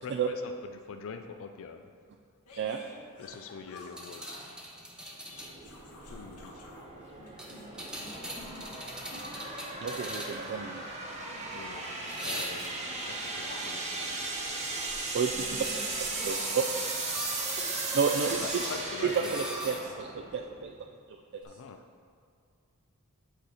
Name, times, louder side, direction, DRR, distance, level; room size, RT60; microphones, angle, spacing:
voice 1, 0.0-1.9 3.2-4.4 6.1-6.6 11.5-11.9 12.2-14.3 18.4-19.4 19.7-19.9 21.4-21.8, left 5 dB, 60° left, 6 dB, 0.4 m, -44 dB
sound 1, 2.5-4.6 5.0-6.9 7.2-8.7 9.1-17.0 17.8-19.2, left 2 dB, 90° left, 1.7 m, -51 dB
sound 2, 3.8-5.6 7.4-10.6 12.1-12.9 15.6-17.5 18.0-19.8 21.4-21.5, equal, 5° right, 0.8 m, -41 dB
sound 3, 5.3-20.7, right 3 dB, 30° right, 1.0 m, -37 dB
voice 2, 8.0-8.9 15.3-15.8 16.1-16.6 17.6-18.0 19.0-19.1, left 1 dB, 30° left, -2 dB, 1.1 m, -50 dB
voice 3, 9.8-10.8 15.1-15.3 16.2-16.6 18.0-18.5 19.1-20.7 21.3-21.4, right 6 dB, 50° right, 4 dB, 0.3 m, -31 dB
8.3 x 4.1 x 4.9 m, 2.2 s
head